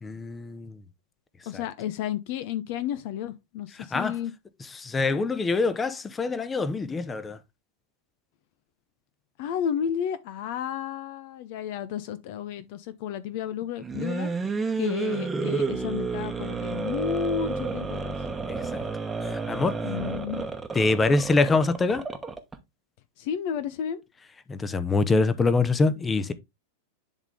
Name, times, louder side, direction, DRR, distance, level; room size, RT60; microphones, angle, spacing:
voice 1, 0.0-0.8 3.9-4.1 4.8-7.4 18.5-18.8 19.2-19.8 20.7-22.0 24.5-26.3, left 3 dB, 15° left, 0.8 m, -24 dB
voice 2, 1.5-4.3 9.4-14.3 14.8-18.1 19.8-20.5 23.2-24.0, left 9 dB, 50° left, 0.6 m, -32 dB
sound 1, 13.8-22.6, right 4 dB, 10° right, 1.1 m, -31 dB
10.5 x 3.7 x 3.6 m
figure-of-eight pair, 90°, 0 cm